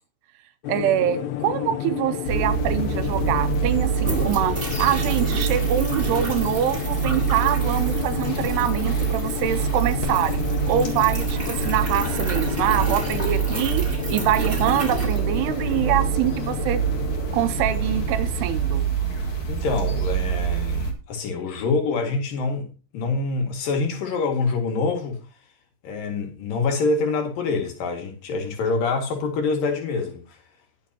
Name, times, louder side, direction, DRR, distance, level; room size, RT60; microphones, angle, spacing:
sound 1, 0.6-18.4, left 11 dB, 85° left, 3.1 m, -31 dB
voice 1, 0.7-16.8 17.3-18.8, right 11 dB, 80° right, 2.7 m, -25 dB
sound 2, 2.2-20.9, right 7 dB, 40° left, 2.1 m, -26 dB
sound 3, 2.8-2.9 3.1-15.9, right 2 dB, 15° right, 3.8 m, -34 dB
voice 2, 19.5-22.7 22.9-25.2 25.8-30.4, left 4 dB, 60° left, 3.6 m, -25 dB
20.0 x 6.8 x 2.9 m
omnidirectional pair, 4.9 m